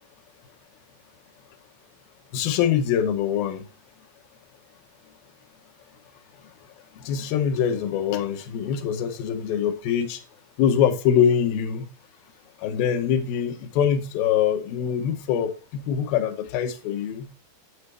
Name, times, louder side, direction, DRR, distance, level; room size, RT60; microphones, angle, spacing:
voice 1, 2.3-3.7 7.0-10.2 10.6-11.9 12.6-17.3, left 8 dB, 75° left, 2.2 m, -24 dB
9.5 x 7.9 x 3.2 m
omnidirectional pair, 5.2 m